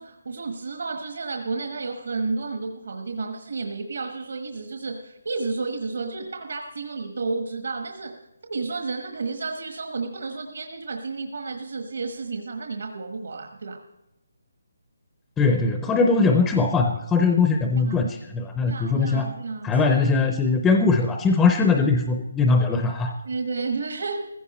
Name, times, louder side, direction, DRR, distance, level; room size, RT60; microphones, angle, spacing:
voice 1, 0.0-8.2 8.5-13.8 17.8-18.1 18.7-19.8 23.2-24.2, right 3 dB, 65° right, 4 dB, 1.3 m, -31 dB
voice 2, 15.4-19.3 19.6-23.1, left 4 dB, 5° left, 5 dB, 0.5 m, -21 dB
16.0 x 15.5 x 4.2 m, 0.94 s
hypercardioid pair, 175°, 0 cm